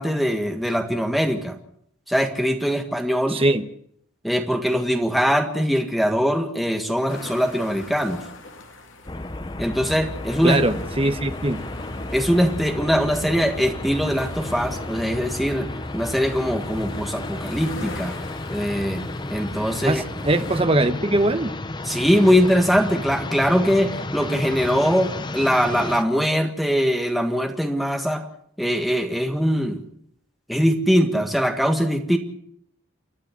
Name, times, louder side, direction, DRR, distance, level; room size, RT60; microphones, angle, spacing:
voice 1, 0.0-1.6 2.1-3.4 4.2-8.2 9.6-10.6 12.1-18.2 18.5-19.0 19.3-20.0 21.9-28.2 28.6-29.8 30.5-32.2, equal, ahead, 1.6 m, -22 dB
voice 2, 3.3-3.7 10.4-11.6 19.8-21.5, right 2 dB, 25° right, 1.1 m, -21 dB
sound 1, 7.1-20.6, left 3 dB, 70° left, 2.9 m, -42 dB
sound 2, 9.1-26.0, left 2 dB, 20° left, 0.7 m, -32 dB
29.5 x 11.5 x 8.3 m
head